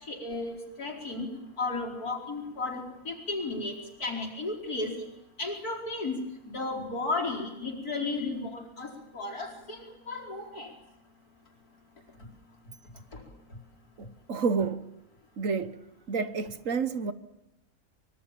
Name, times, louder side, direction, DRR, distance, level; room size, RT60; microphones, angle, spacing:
voice 1, 0.1-1.3 1.6-3.7 4.0-4.9 5.4-6.2 6.5-10.7, left 3 dB, 80° left, 5.2 m, -34 dB
voice 2, 14.0-14.9 15.4-15.8 16.1-17.1, right 5 dB, 60° right, 1.5 m, -30 dB
25.0 x 23.0 x 7.5 m
omnidirectional pair, 1.6 m